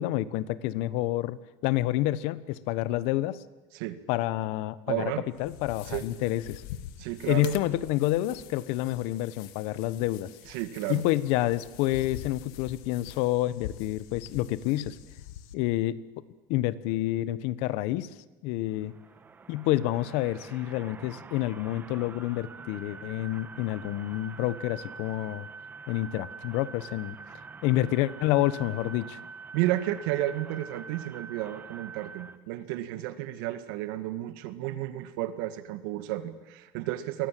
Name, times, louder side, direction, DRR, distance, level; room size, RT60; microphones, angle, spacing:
voice 1, 0.0-1.4 1.6-3.4 4.1-5.1 5.4-6.6 7.3-10.3 10.9-15.0 15.5-16.0 16.5-18.1 18.4-18.9 19.5-25.5 25.9-27.2 27.6-29.2, left 15 dB, 65° left, 16 dB, 1.1 m, -28 dB
voice 2, 4.9-5.2 5.9-6.0 7.0-7.5 10.5-11.0 29.5-37.3, right 15 dB, 85° right, 10 dB, 2.1 m, -32 dB
sound 1, 5.3-15.5, left 11 dB, 85° left, 2.0 m, -45 dB
sound 2, 18.7-32.4, right 5 dB, 15° right, 1.2 m, -45 dB
29.5 x 23.0 x 7.7 m, 1.1 s
cardioid pair, 165°, 11 cm